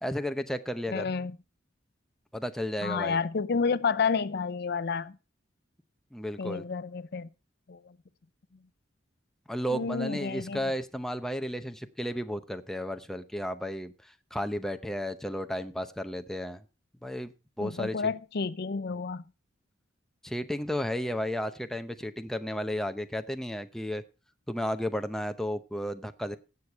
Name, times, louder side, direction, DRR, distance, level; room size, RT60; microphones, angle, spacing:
voice 1, 0.0-1.1 2.3-3.2 6.1-6.6 9.5-16.6 17.0-17.3 17.6-18.0 20.2-24.0 24.5-26.4, equal, ahead, 0.7 m, -33 dB
voice 2, 0.9-1.3 2.8-5.2 6.4-7.3 7.7-7.9 9.7-10.6 17.6-19.2, left 5 dB, 55° left, 0.6 m, -30 dB
17.0 x 6.7 x 4.5 m
head